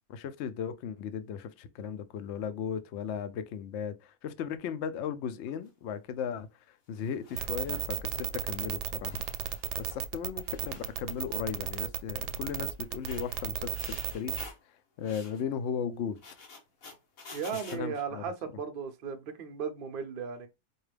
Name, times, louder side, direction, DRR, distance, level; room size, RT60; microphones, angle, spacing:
voice 1, 0.1-6.5 6.9-9.2 9.8-13.7 14.1-14.4 15.0-16.2 17.7-18.2, left 7 dB, 75° left, 0.6 m, -36 dB
sound 1, 5.5-5.7 6.9-7.9 8.7-8.8 9.0-10.1 10.4-11.4 11.7-12.0 12.8-14.6 15.0-15.4 16.1-17.8, left 4 dB, 60° left, 1.5 m, -50 dB
sound 2, 7.4-14.5, right 11 dB, 85° right, 1.2 m, -34 dB
voice 2, 17.3-20.5, right 6 dB, 65° right, 0.5 m, -36 dB
4.6 x 2.3 x 3.2 m
omnidirectional pair, 1.7 m